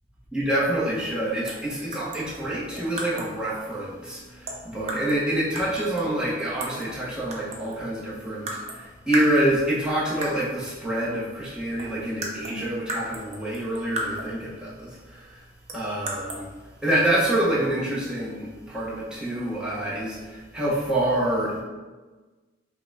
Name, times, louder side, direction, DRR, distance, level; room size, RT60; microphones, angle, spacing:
voice 1, 0.3-15.4 15.7-16.5 16.8-21.6, right 1 dB, 5° right, -7 dB, 1.1 m, -27 dB
sound 1, 1.5-1.7 1.9-3.4 4.5-5.2 5.5-6.9 7.3-7.9 8.5-8.8 9.1-9.8 10.2-10.5 11.4-11.5 11.8-14.4 15.7-16.4, right 1 dB, 35° right, 0.7 m, -34 dB
5.5 x 2.3 x 4.0 m, 1.3 s
head